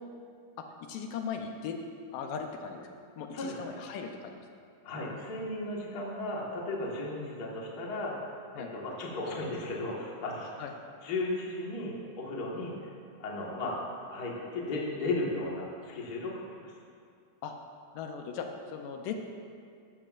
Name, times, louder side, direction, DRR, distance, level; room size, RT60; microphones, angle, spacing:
voice 1, 0.8-1.8 2.1-2.9 3.2-4.4 8.6-8.7 10.6-10.7 17.4-17.6 17.9-19.2, left 6 dB, 80° left, 4 dB, 2.3 m, -38 dB
voice 2, 4.8-8.1 8.5-10.5 11.0-12.9 13.2-13.8 14.1-16.7, left 2 dB, 40° left, -3 dB, 1.5 m, -35 dB
14.5 x 12.5 x 2.5 m, 2.3 s
omnidirectional pair, 3.9 m